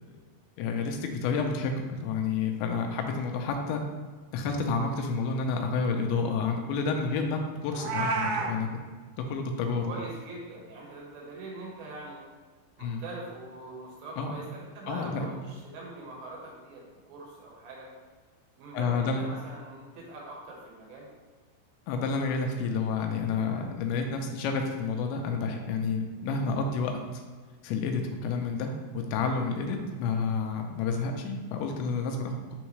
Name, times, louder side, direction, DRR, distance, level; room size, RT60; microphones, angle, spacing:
voice 1, 0.6-3.8 4.3-8.7 9.2-9.9 12.8-13.0 14.2-14.3 14.9-15.3 18.7-19.2 21.9-27.2 27.6-32.6, left 4 dB, 85° left, 3 dB, 3.0 m, -30 dB
Meow, 7.7-8.5, right 4 dB, 80° right, 2.7 m, -29 dB
voice 2, 9.8-12.3 12.8-17.9 18.6-21.1, right 2 dB, 65° right, -3 dB, 2.8 m, -43 dB
9.2 x 3.6 x 3.1 m, 1.4 s
omnidirectional pair, 5.1 m